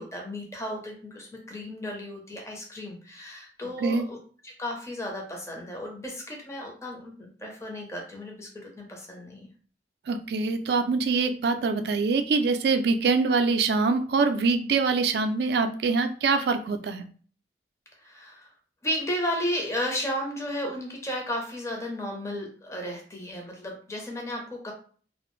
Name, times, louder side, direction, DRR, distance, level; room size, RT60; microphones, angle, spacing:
voice 1, 0.0-4.2 4.4-9.5 18.0-18.5 18.8-24.7, equal, 15° left, 1 dB, 0.6 m, -34 dB
voice 2, 10.1-17.1, right 4 dB, 60° right, 8 dB, 0.3 m, -24 dB
2.4 x 2.0 x 3.0 m, 0.43 s
head